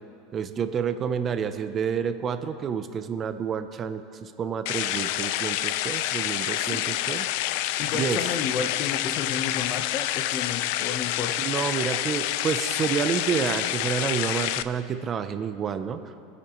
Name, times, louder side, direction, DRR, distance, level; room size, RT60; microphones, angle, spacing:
voice 1, 0.3-7.3 7.9-8.2 11.4-16.1, right 7 dB, 25° right, 10 dB, 0.5 m, -29 dB
sound 1, 4.7-14.6, left 14 dB, 60° left, 0.3 m, -28 dB
voice 2, 7.8-11.3, left 6 dB, 35° left, 8 dB, 0.9 m, -32 dB
23.5 x 8.4 x 3.1 m, 2.5 s
supercardioid pair, 150°, 0 cm